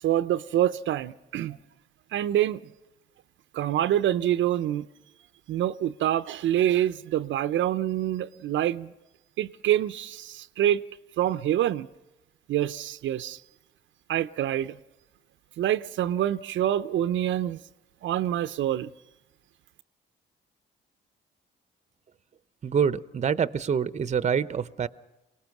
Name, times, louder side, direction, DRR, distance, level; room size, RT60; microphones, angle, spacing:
voice 1, 0.0-1.6 2.1-2.6 3.5-4.9 5.5-8.9 9.4-10.8 11.2-11.9 12.5-13.4 14.1-14.8 15.6-17.6 18.0-18.9, right 12 dB, 75° right, 0.6 m, -26 dB
voice 2, 22.6-24.9, right 7 dB, 35° right, 0.7 m, -26 dB
24.0 x 19.0 x 5.9 m
cardioid pair, 90°, 20 cm